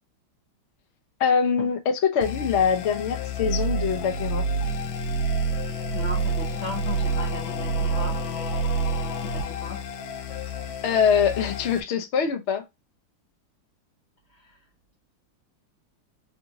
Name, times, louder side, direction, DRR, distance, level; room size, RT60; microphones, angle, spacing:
voice 1, 1.2-4.4 10.8-12.6, left 6 dB, 75° left, 0.6 m, -23 dB
sound 1, 2.2-11.8, right 2 dB, 90° left, 1.5 m, -28 dB
voice 2, 5.9-8.6 9.3-9.8 14.4-14.6, left 3 dB, 45° left, 0.9 m, -37 dB
3.5 x 2.9 x 2.6 m
omnidirectional pair, 2.1 m